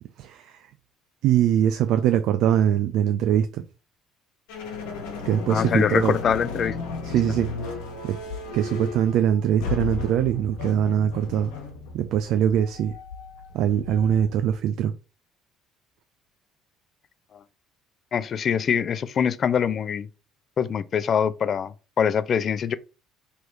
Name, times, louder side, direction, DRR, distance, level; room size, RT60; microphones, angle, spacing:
voice 1, 0.2-0.7 1.2-3.6 5.2-6.1 7.0-7.8 8.0-8.2 8.5-11.5 11.9-12.9 13.5-14.9, right 10 dB, 65° right, 0.4 m, -22 dB
sound 1, 4.5-14.6, left 4 dB, 75° left, 1.1 m, -34 dB
voice 2, 5.5-6.8 17.3-17.4 18.1-20.1 20.6-22.8, left 7 dB, 45° left, 0.4 m, -24 dB
3.1 x 3.1 x 4.6 m
hypercardioid pair, 60°, 0 cm